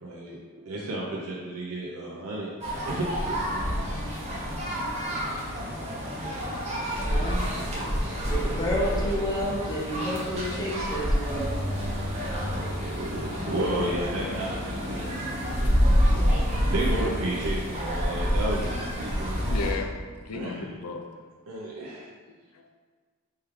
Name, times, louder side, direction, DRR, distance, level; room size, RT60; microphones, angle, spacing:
voice 1, 0.0-0.4 0.7-2.5 2.9-3.7 4.0-4.2 6.6-6.8 7.7-8.8 12.3-15.2 15.6-19.4 20.3-20.7 21.5-22.1, right 1 dB, 80° right, -4 dB, 0.7 m, -33 dB
sound 1, 2.6-19.7, equal, 30° right, 0.9 m, -28 dB
voice 2, 7.1-7.4 8.3-11.5, equal, 20° left, -5 dB, 0.9 m, -30 dB
voice 3, 19.5-21.1 22.3-22.7, left 4 dB, 85° left, 5 dB, 0.5 m, -35 dB
4.6 x 3.2 x 3.6 m, 1.5 s
head